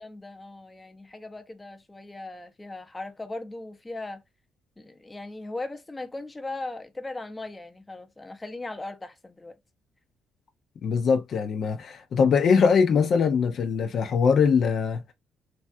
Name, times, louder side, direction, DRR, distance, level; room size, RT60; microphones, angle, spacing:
voice 1, 0.0-4.2 4.8-9.6, left 2 dB, 15° left, 0.6 m, -38 dB
voice 2, 10.8-15.0, left 6 dB, 60° left, 0.5 m, -22 dB
3.3 x 2.3 x 2.6 m
cardioid pair, 90°, 0 cm